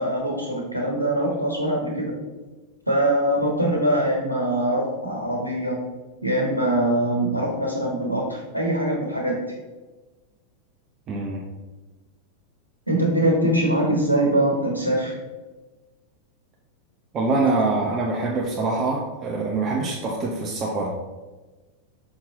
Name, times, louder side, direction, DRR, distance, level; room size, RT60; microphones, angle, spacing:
voice 1, 0.0-2.2 2.9-5.8 6.2-9.4 12.9-15.1, right 1 dB, 85° right, -1 dB, 1.3 m, -23 dB
voice 2, 11.1-11.4 17.1-20.9, right 3 dB, 30° right, -2 dB, 1.0 m, -24 dB
6.3 x 5.9 x 3.7 m, 1.2 s
figure-of-eight pair, 90°, 0 cm